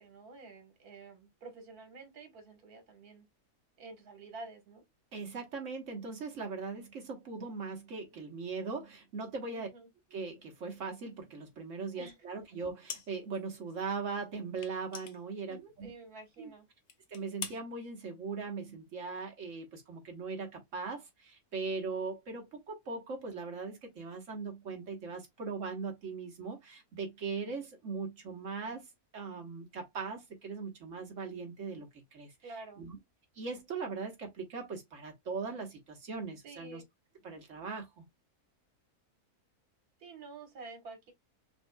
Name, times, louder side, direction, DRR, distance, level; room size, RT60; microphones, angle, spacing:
voice 1, 0.0-3.3 3.8-4.8 9.5-9.9 12.0-12.4 15.5-16.7 32.4-32.9 36.4-36.8 40.0-41.1, right 3 dB, 75° right, 1.9 m, -49 dB
voice 2, 5.1-9.7 10.1-15.9 16.4-16.5 17.1-33.0 33.4-36.8 37.2-38.0, right 4 dB, 55° right, 1.6 m, -40 dB
sound 1, 12.9-13.4 13.7-13.8 14.6-16.0 16.3-16.5 16.9-17.6, left 7 dB, 55° left, 0.9 m, -44 dB
5.9 x 2.7 x 2.2 m
omnidirectional pair, 1.6 m